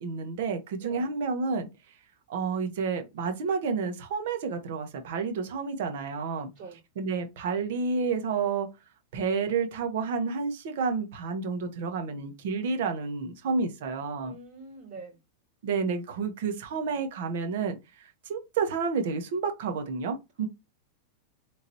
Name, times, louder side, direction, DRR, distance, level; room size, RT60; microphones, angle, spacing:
voice 1, 0.0-1.7 2.3-6.5 7.0-8.7 9.1-14.3 15.6-20.5, right 5 dB, 65° right, 1.4 m, -30 dB
voice 2, 6.3-6.8 14.2-15.2, right 4 dB, 50° right, 3.0 m, -45 dB
4.1 x 3.7 x 3.0 m
supercardioid pair, 140°, 0 cm